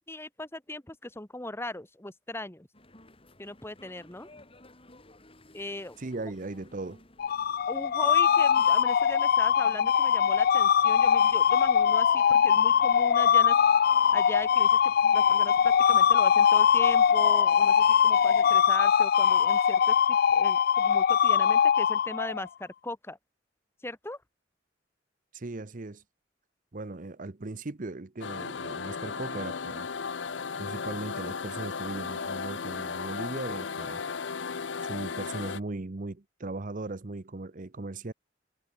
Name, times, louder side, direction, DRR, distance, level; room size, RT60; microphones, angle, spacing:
voice 1, 0.1-2.7 3.4-4.3 5.5-6.0 7.7-13.6 14.1-23.2 23.8-24.2, left 1 dB, 15° left, 1.9 m, -39 dB
sound 1, 2.7-18.7, left 1 dB, 30° left, 7.1 m, -56 dB
voice 2, 6.0-7.0 25.3-26.0 26.7-29.9 30.6-34.0 34.8-38.1, right 2 dB, 45° right, 0.8 m, -38 dB
sound 2, 7.2-22.5, left 8 dB, 55° left, 0.4 m, -22 dB
sound 3, 28.2-35.6, left 5 dB, 85° left, 0.8 m, -35 dB
head